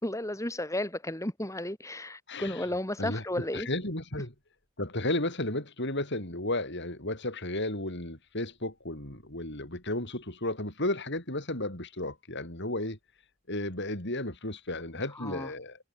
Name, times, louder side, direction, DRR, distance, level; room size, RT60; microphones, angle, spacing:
voice 1, 0.0-3.7 15.1-15.5, left 1 dB, 15° left, 3.5 m, -33 dB
voice 2, 2.3-2.6 3.0-4.3 4.8-13.0 13.5-15.8, left 1 dB, 55° left, 6.5 m, -33 dB
head